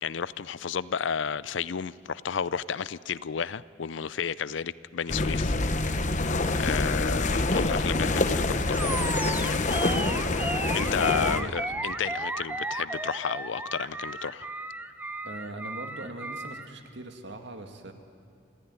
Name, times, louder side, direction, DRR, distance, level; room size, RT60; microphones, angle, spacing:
voice 1, 0.0-5.6 6.6-8.9 10.7-14.5, left 7 dB, 70° left, 19 dB, 0.5 m, -32 dB
sound 1, 5.1-11.4, left 2 dB, 40° left, 1.1 m, -26 dB
voice 2, 6.4-6.7 11.1-11.5 15.2-17.9, right 1 dB, 65° right, 5 dB, 2.2 m, -41 dB
Animal, 8.7-16.7, right 2 dB, 10° right, 0.8 m, -34 dB
27.0 x 15.5 x 9.8 m, 2.5 s
head